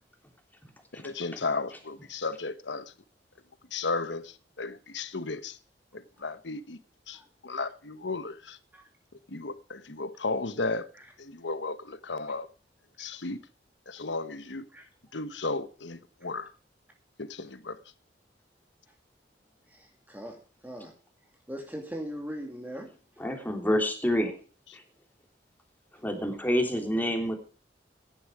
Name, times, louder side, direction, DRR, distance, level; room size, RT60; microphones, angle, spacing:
voice 1, 0.9-2.9 3.7-5.6 5.9-6.8 7.1-8.6 9.3-10.9 11.2-12.5 13.0-13.4 13.9-14.6 15.1-16.5 17.2-17.8, left 3 dB, 85° left, 1.2 m, -34 dB
voice 2, 19.7-20.9 21.5-22.9, equal, 10° right, 2.4 m, -40 dB
voice 3, 23.2-24.3 24.7-24.8 26.0-27.4, equal, 10° left, 3.2 m, -27 dB
16.0 x 11.0 x 4.9 m
head